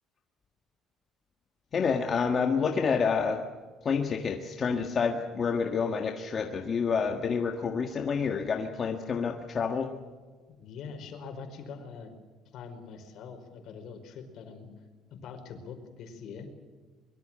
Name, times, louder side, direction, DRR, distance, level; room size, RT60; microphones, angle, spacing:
voice 1, 1.7-3.4 3.8-9.9, left 5 dB, 30° left, 3 dB, 1.6 m, -28 dB
voice 2, 10.5-12.1 12.5-14.7 15.1-16.5, left 5 dB, 55° left, 6 dB, 4.9 m, -43 dB
24.0 x 23.0 x 7.6 m, 1.4 s
cardioid pair, 180°, 0 cm